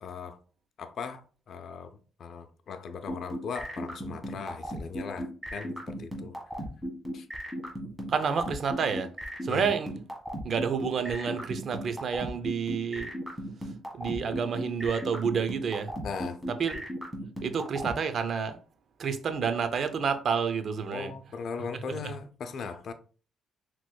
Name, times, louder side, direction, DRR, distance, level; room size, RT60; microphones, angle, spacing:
voice 1, 0.0-0.4 0.8-6.4 7.1-7.3 9.5-9.7 16.0-16.4 20.9-22.9, left 5 dB, 60° left, 0.5 m, -39 dB
sound 1, 3.1-17.9, equal, 5° right, 1.5 m, -35 dB
voice 2, 8.1-9.1 9.4-9.9 10.4-13.1 13.9-15.9 16.6-16.8 17.4-18.6 19.0-21.1, right 6 dB, 55° right, 0.6 m, -29 dB
6.0 x 3.0 x 2.2 m
cardioid pair, 90°, 0 cm